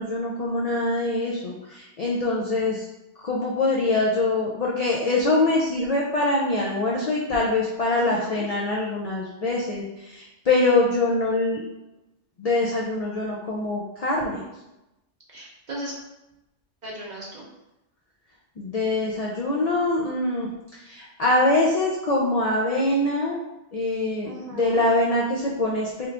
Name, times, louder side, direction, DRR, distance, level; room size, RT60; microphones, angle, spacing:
voice 1, 0.0-2.9 3.2-11.6 12.4-14.4 18.6-23.4 23.7-26.1, left 2 dB, 70° left, -3 dB, 0.3 m, -24 dB
voice 2, 7.9-8.5 15.3-16.0 16.8-17.4 24.2-24.8, right 1 dB, 45° right, -3 dB, 0.6 m, -36 dB
3.0 x 2.4 x 3.3 m, 0.94 s
omnidirectional pair, 1.2 m